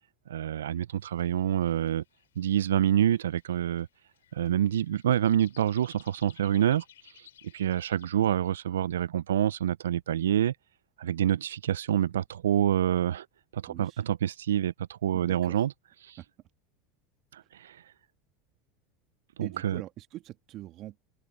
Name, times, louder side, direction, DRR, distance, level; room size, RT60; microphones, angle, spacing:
voice 1, 0.3-2.0 2.4-3.9 4.3-6.8 7.5-10.5 11.0-13.3 13.5-15.7 16.0-16.2 17.3-17.8 19.4-19.8, right 10 dB, 85° right, 0.4 m, -27 dB
sound 1, 1.0-8.1, left 11 dB, 85° left, 2.8 m, -59 dB
voice 2, 13.7-14.0 15.1-15.7 16.2-16.3 19.4-21.0, right 15 dB, 50° right, 1.8 m, -43 dB
hypercardioid pair, 85°, 0 cm